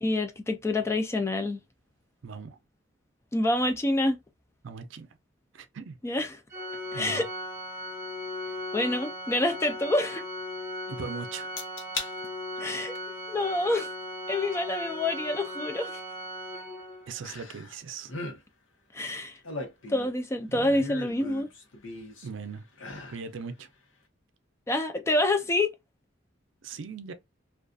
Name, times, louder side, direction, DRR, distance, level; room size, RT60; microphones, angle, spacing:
voice 1, 0.0-1.6 3.3-4.2 6.0-6.4 6.9-7.3 8.7-10.2 12.6-12.9 13.3-13.9 14.3-16.0 18.9-19.4 19.9-21.5 24.7-25.7, left 2 dB, 15° left, 0.3 m, -27 dB
voice 2, 2.2-2.6 4.6-5.1 5.5-6.0 6.9-7.2 10.9-11.5 17.1-18.2 20.5-20.9 22.2-22.6 23.1-23.7 26.6-27.1, right 5 dB, 70° right, 0.4 m, -39 dB
Organ, 6.5-17.2, left 1 dB, 15° right, 0.7 m, -37 dB
sound 1, 11.6-12.1 12.6-13.0 14.5-14.6 17.2-17.8 18.0-18.4 19.2-20.2 20.8-22.3 22.7-23.2 23.6-23.7, left 3 dB, 85° left, 0.9 m, -38 dB
2.5 x 2.4 x 2.3 m
head